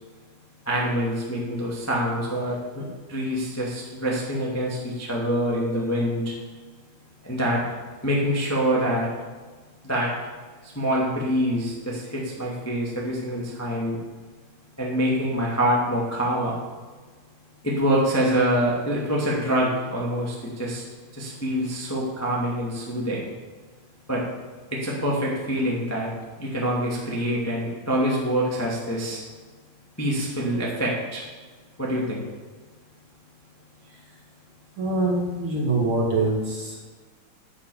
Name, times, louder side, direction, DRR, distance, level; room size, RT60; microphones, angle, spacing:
voice 1, 0.6-6.3 7.2-7.6 8.0-9.1 9.8-10.1 10.6-14.0 14.8-16.6 17.6-20.8 21.1-23.2 24.1-24.2 24.7-26.1 26.4-29.2 30.0-31.2 31.8-32.2, equal, 5° left, -4 dB, 1.2 m, -25 dB
voice 2, 34.8-36.9, right 2 dB, 40° right, -3 dB, 2.4 m, -24 dB
9.7 x 8.2 x 7.1 m, 1.4 s
omnidirectional pair, 4.3 m